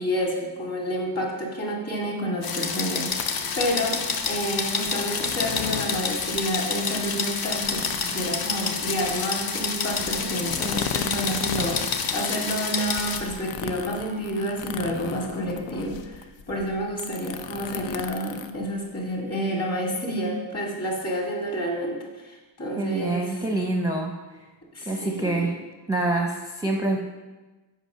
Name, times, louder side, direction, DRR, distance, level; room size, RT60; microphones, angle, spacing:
voice 1, 0.0-23.4 24.7-25.5, equal, 35° left, -1 dB, 2.0 m, -29 dB
sound 1, 2.4-13.2, left 5 dB, 55° left, 0.8 m, -28 dB
sound 2, 3.1-19.2, left 9 dB, 85° left, 0.7 m, -37 dB
voice 2, 22.8-24.1 24.9-25.5 25.9-27.0, right 2 dB, 10° right, 1 dB, 0.5 m, -26 dB
8.1 x 5.3 x 6.5 m, 1.2 s
wide cardioid pair, 165°, 43 cm